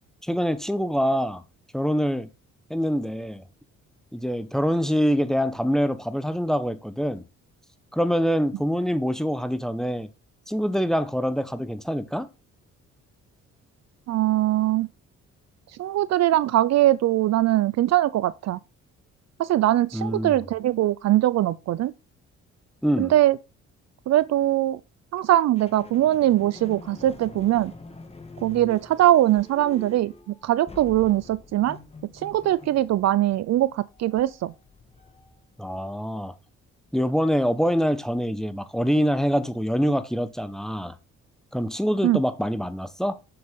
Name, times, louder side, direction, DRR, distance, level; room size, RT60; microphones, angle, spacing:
voice 1, 0.2-1.4 1.7-2.3 2.7-3.4 4.1-7.2 7.9-10.1 10.5-12.3 19.9-20.4 22.8-23.1 35.6-36.3 36.9-41.0 41.5-43.2, equal, ahead, 0.9 m, -25 dB
voice 2, 14.1-14.9 15.8-18.6 19.4-21.9 23.0-23.4 24.1-24.8 25.1-27.7 28.4-31.8 32.2-34.5 42.0-42.2, right 14 dB, 60° right, 0.5 m, -21 dB
sound 1, 25.6-35.7, left 3 dB, 20° left, 1.3 m, -45 dB
6.8 x 6.7 x 3.6 m
cardioid pair, 90°, 30 cm